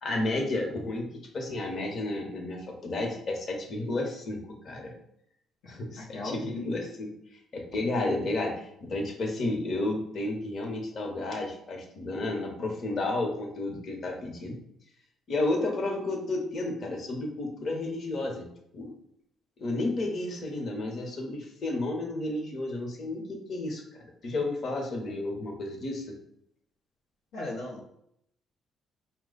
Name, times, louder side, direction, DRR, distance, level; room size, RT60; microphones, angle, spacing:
voice 1, 0.0-4.4 4.6-4.9 5.7-7.1 7.5-14.6 15.3-18.5 18.7-18.9 19.6-23.8 24.2-26.2, left 2 dB, 55° left, 1 dB, 1.0 m, -32 dB
voice 2, 5.6-6.7 27.3-27.9, left 2 dB, 80° left, -5 dB, 0.8 m, -38 dB
4.9 x 2.2 x 3.9 m, 0.74 s
supercardioid pair, 60°, 0 cm